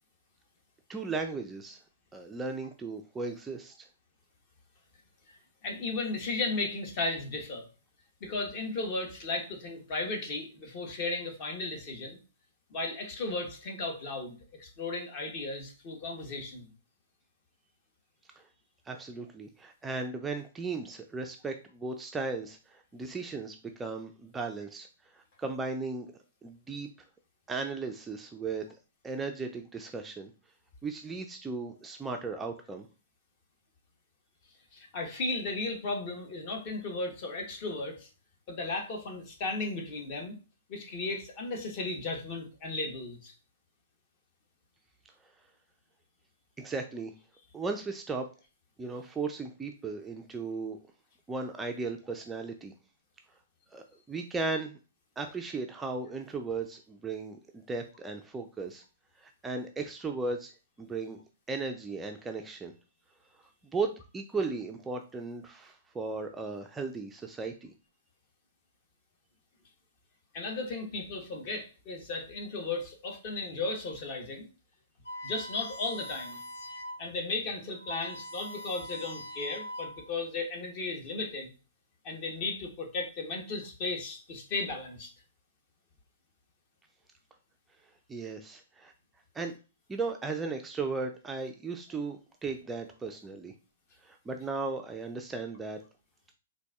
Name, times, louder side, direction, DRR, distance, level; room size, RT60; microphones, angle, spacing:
voice 1, 0.9-1.8 2.1-3.7 18.9-24.9 25.4-26.1 26.4-26.9 27.5-28.6 29.0-30.3 30.8-32.9 46.6-47.1 47.5-48.3 48.8-50.8 51.3-52.7 53.7-54.7 55.2-58.8 59.2-60.5 60.8-61.2 61.5-62.7 63.7-67.7 88.1-88.9 89.3-89.5 89.9-93.5 94.0-95.8, right 4 dB, 10° right, 4 dB, 0.3 m, -36 dB
voice 2, 5.6-7.7 8.2-12.2 12.7-16.7 34.7-38.1 38.5-40.4 40.7-43.3 70.3-74.4 75.2-76.4 77.0-81.5 82.0-85.1, left 3 dB, 40° left, 3 dB, 0.9 m, -35 dB
sound 1, 75.1-77.1 77.4-77.5 77.7-80.2, left 1 dB, 75° left, 1.1 m, -42 dB
4.0 x 2.5 x 2.3 m, 0.33 s
hypercardioid pair, 140°, 0 cm